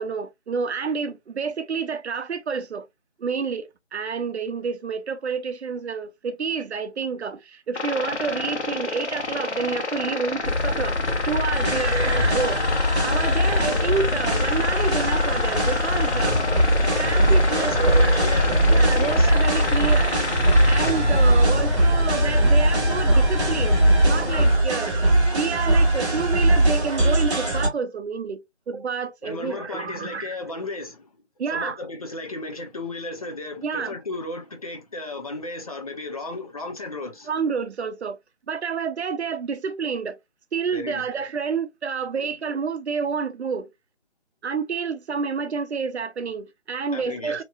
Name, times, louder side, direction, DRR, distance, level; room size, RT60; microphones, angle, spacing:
voice 1, 0.0-2.9 3.2-11.0 11.3-16.4 17.0-20.2 20.6-25.0 25.3-30.4 31.4-31.8 33.6-33.9 37.3-38.2 38.5-40.2 40.5-43.7 44.4-47.4, right 5 dB, 70° right, 0.6 m, -29 dB
sound 1, 7.7-20.9, left 3 dB, 75° left, 1.1 m, -29 dB
sound 2, 10.4-24.6, left 3 dB, 55° left, 1.5 m, -25 dB
sound 3, 11.5-27.7, right 2 dB, 25° right, 1.2 m, -21 dB
voice 2, 11.6-12.0 17.5-19.6 29.2-31.1 31.5-37.3 40.7-41.1 42.1-42.3 46.9-47.4, left 2 dB, 35° left, 0.6 m, -34 dB
2.9 x 2.6 x 2.2 m
figure-of-eight pair, 155°, 34 cm